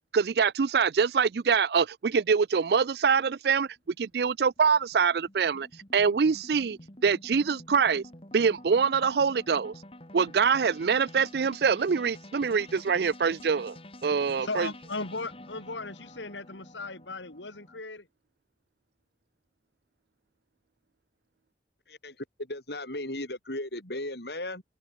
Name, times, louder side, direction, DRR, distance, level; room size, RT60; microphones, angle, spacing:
voice 1, 0.1-3.7 4.0-5.7 5.9-8.0 8.3-9.7 10.1-13.7 14.0-14.7, right 6 dB, 60° right, 0.4 m, -24 dB
sound 1, 3.6-17.8, left 1 dB, 30° left, 3.9 m, -49 dB
voice 2, 14.4-18.1, left 3 dB, 85° left, 3.5 m, -37 dB
voice 3, 21.9-24.6, left 1 dB, 65° left, 5.2 m, -36 dB
head